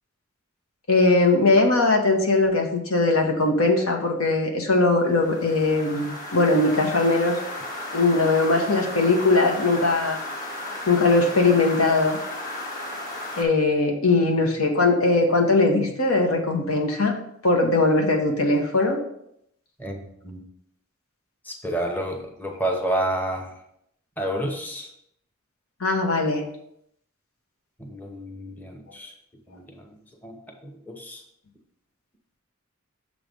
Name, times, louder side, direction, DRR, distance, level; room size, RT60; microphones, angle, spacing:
voice 1, 0.9-7.4 7.9-10.2 10.9-12.2 13.3-17.1 17.4-19.0 25.8-26.4, left 2 dB, 90° left, 2 dB, 1.2 m, -20 dB
sound 1, 5.1-13.4, left 1 dB, 45° left, 1.1 m, -34 dB
voice 2, 21.5-23.5 24.2-24.9 27.8-29.1 29.5-29.8 30.2-30.3 30.6-31.2, right 1 dB, 10° left, 1 dB, 0.8 m, -29 dB
6.7 x 3.2 x 5.2 m, 0.74 s
head